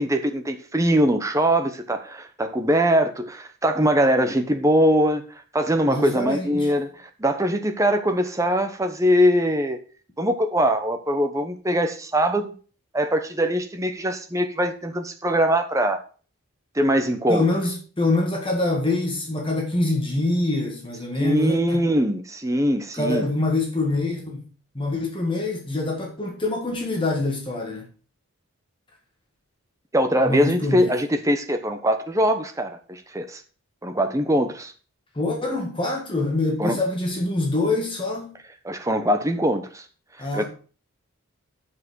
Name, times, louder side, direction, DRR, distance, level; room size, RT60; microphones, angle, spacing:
voice 1, 0.0-5.2 5.5-9.8 10.2-12.5 12.9-16.0 16.7-17.5 21.2-23.3 29.9-33.4 33.8-34.7 36.6-36.8 38.6-39.8 40.3-40.4, equal, 15° right, 0.9 m, -22 dB
voice 2, 5.9-6.7 17.3-21.8 23.0-24.5 24.7-27.9 30.2-31.0 35.1-38.3 40.2-40.4, left 2 dB, 20° left, 1.6 m, -25 dB
7.5 x 5.7 x 6.2 m
head